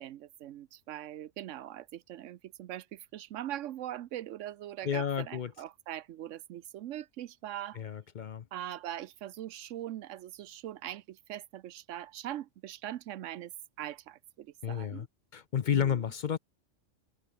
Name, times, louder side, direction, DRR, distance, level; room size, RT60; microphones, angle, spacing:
voice 1, 0.0-7.8 8.5-13.5 13.8-15.1 15.7-16.0, right 12 dB, 90° right, 1.0 m, -41 dB
voice 2, 4.8-5.5 7.8-8.4 14.6-15.1 15.3-16.4, left 8 dB, 50° left, 0.6 m, -31 dB
omnidirectional pair, 1.2 m